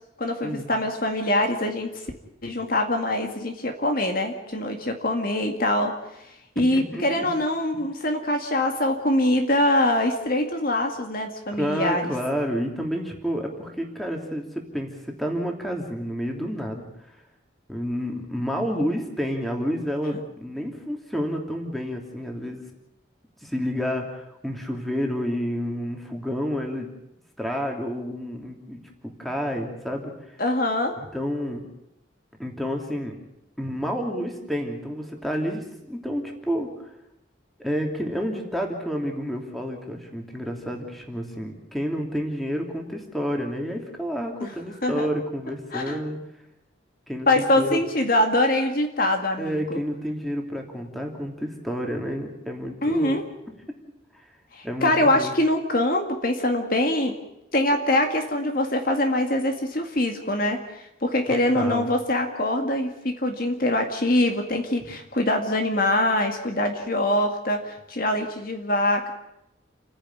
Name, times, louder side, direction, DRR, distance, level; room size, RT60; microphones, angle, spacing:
voice 1, 0.2-1.9 2.4-5.9 6.6-12.0 30.4-30.9 44.4-44.5 44.8-45.1 45.7-46.0 47.3-49.8 52.8-53.2 54.5-57.2 57.5-69.1, left 1 dB, 45° left, 4 dB, 2.1 m, -24 dB
voice 2, 6.6-7.3 11.5-17.2 17.7-22.6 23.4-26.9 27.4-28.8 29.2-30.4 31.0-31.6 32.4-33.2 33.6-36.9 37.6-46.2 47.1-47.8 49.4-53.2 54.1-54.3 54.6-55.3 61.3-61.9, equal, ahead, 1 dB, 3.0 m, -30 dB
29.5 x 10.5 x 9.7 m, 0.87 s
head